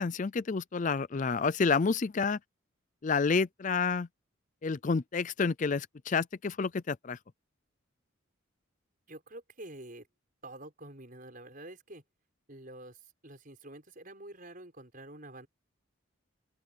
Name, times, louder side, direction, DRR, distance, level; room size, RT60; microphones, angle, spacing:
voice 1, 0.0-2.4 3.0-4.1 4.6-7.2, left 4 dB, 40° left, 0.4 m, -29 dB
voice 2, 9.1-10.1 10.4-12.0 12.5-15.5, right 1 dB, 40° right, 6.0 m, -48 dB
open air
head